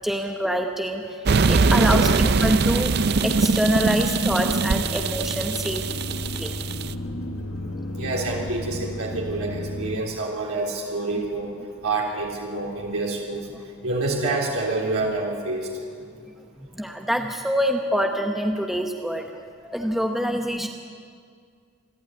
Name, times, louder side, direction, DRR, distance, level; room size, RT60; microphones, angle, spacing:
voice 1, 0.0-1.1 1.5-3.0 3.2-5.9 6.4-6.5 16.7-19.3 19.6-20.7, equal, ahead, 2 dB, 0.9 m, -25 dB
sound 1, 1.3-6.9, right 4 dB, 45° right, 0.5 m, -22 dB
sound 2, 4.5-10.0, left 1 dB, 60° left, 1.4 m, -33 dB
voice 2, 7.9-11.5 11.8-13.5 13.8-15.7, right 2 dB, 75° right, -3 dB, 3.6 m, -27 dB
26.5 x 12.0 x 9.3 m, 2.2 s
head